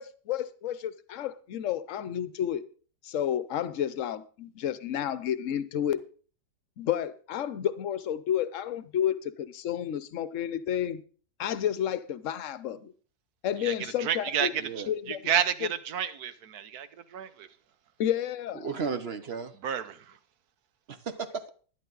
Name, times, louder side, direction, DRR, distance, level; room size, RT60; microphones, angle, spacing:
voice 1, 0.0-2.6 3.0-6.0 6.8-11.0 11.4-12.9 13.4-14.5 14.9-15.3 15.6-15.7 18.0-18.7, left 10 dB, 55° left, 1.0 m, -31 dB
voice 2, 13.6-14.5 14.8-17.5 19.6-20.2, right 9 dB, 70° right, 1.3 m, -31 dB
voice 3, 14.6-14.9 18.6-19.5 20.9-21.5, right 5 dB, 45° right, 0.9 m, -34 dB
11.5 x 11.5 x 3.9 m
omnidirectional pair, 1.8 m